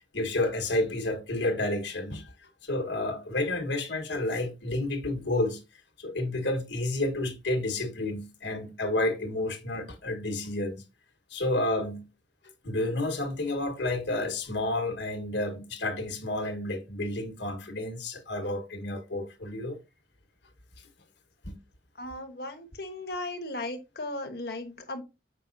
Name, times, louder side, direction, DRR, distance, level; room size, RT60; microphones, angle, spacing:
voice 1, 0.0-2.3 2.6-5.6 6.0-10.8 11.3-12.1 12.6-19.8 21.4-21.6, left 2 dB, 70° left, 1.6 m, -30 dB
voice 2, 22.0-25.0, left 2 dB, 55° left, 1.3 m, -36 dB
7.6 x 5.5 x 2.7 m
head